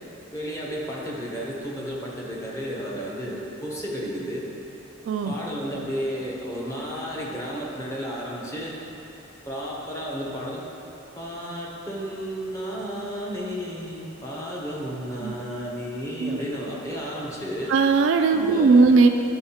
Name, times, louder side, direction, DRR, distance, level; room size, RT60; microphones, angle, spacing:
voice 1, 0.3-4.5 5.2-8.8 9.5-10.6 11.2-17.7 18.3-18.9, equal, 15° left, -5 dB, 0.9 m, -32 dB
voice 2, 17.7-19.1, right 4 dB, 65° right, 6 dB, 0.3 m, -18 dB
9.8 x 4.7 x 2.8 m, 3.0 s
head